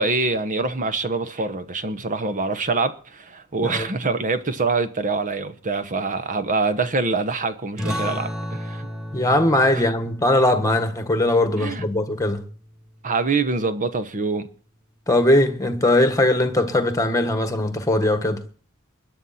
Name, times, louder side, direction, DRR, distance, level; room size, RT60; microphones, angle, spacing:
voice 1, 0.0-8.9 9.7-9.8 11.5-11.9 13.0-14.5, right 3 dB, 35° right, 1.0 m, -25 dB
sound 1, 7.8-13.0, equal, 5° right, 2.7 m, -34 dB
voice 2, 9.1-12.4 15.1-18.4, left 1 dB, 15° left, 1.5 m, -20 dB
21.0 x 11.0 x 4.3 m
head